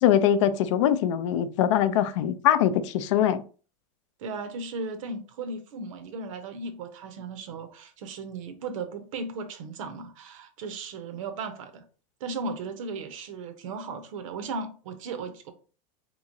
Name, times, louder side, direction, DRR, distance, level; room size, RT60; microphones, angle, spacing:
voice 1, 0.0-3.4, left 10 dB, 60° left, 0.4 m, -22 dB
voice 2, 4.2-11.8 12.2-15.5, right 3 dB, 65° right, 0.8 m, -36 dB
3.7 x 3.0 x 2.6 m
supercardioid pair, 165°, 18 cm